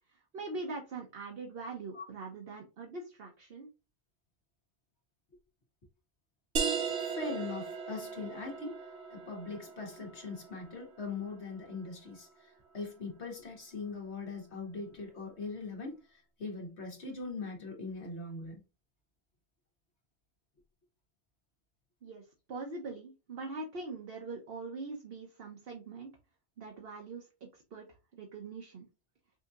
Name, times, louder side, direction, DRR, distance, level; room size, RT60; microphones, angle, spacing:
voice 1, 0.1-3.7 22.0-26.1 26.6-27.9 28.1-28.9, right 3 dB, 65° right, 1.0 m, -42 dB
sound 1, 6.6-11.9, right 5 dB, 80° right, 1.1 m, -38 dB
voice 2, 6.9-8.8 9.1-18.6, left 3 dB, 90° left, 1.7 m, -41 dB
5.7 x 2.8 x 2.4 m
omnidirectional pair, 1.1 m